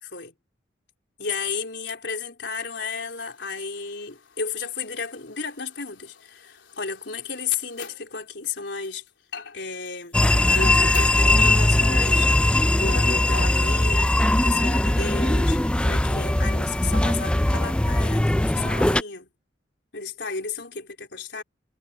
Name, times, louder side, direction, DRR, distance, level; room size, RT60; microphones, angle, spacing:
voice 1, 0.0-0.3 1.2-9.0 9.5-10.2 10.5-19.3 19.9-21.4, left 5 dB, 70° left, 4.1 m, -33 dB
sound 1, 2.8-17.2, left 6 dB, 90° left, 3.8 m, -47 dB
sound 2, 10.1-19.0, left 1 dB, 5° left, 0.3 m, -20 dB
head